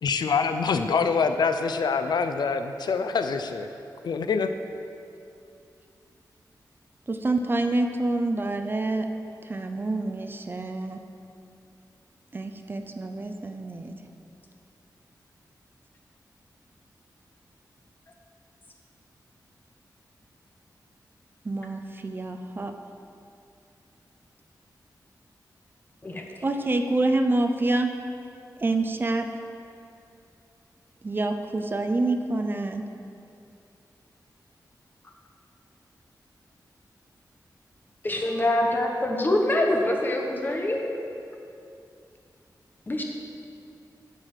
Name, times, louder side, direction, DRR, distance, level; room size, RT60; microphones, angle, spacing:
voice 1, 0.0-3.7 4.0-4.5, left 5 dB, 80° left, 8 dB, 0.5 m, -25 dB
voice 2, 7.1-9.1 9.4-11.0 12.3-14.0 21.4-22.7 26.4-27.9 28.6-29.3 31.0-32.9, right 2 dB, 30° right, 6 dB, 0.5 m, -27 dB
voice 3, 38.0-40.8 42.9-43.0, left 1 dB, 30° left, 1 dB, 1.2 m, -24 dB
11.5 x 4.9 x 7.5 m, 2.6 s
wide cardioid pair, 155°, 7 cm